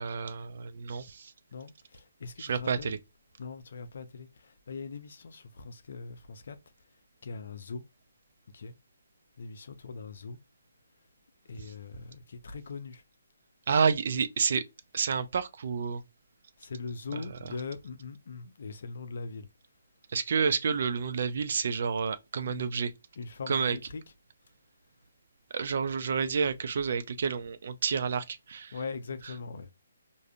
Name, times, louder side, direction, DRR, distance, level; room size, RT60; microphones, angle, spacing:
voice 1, 0.0-1.3 2.4-3.0 11.6-11.7 13.7-14.6 14.9-16.0 17.1-17.5 20.1-22.9 23.5-23.8 25.5-28.7, right 6 dB, 50° right, 0.5 m, -29 dB
voice 2, 1.5-3.0 3.4-6.6 7.2-7.8 8.5-8.7 9.4-10.4 11.5-13.0 16.6-19.5 22.5-22.7 23.2-24.0 28.7-29.7, left 4 dB, 55° left, 0.6 m, -41 dB
4.8 x 2.6 x 2.3 m
figure-of-eight pair, 140°, 0 cm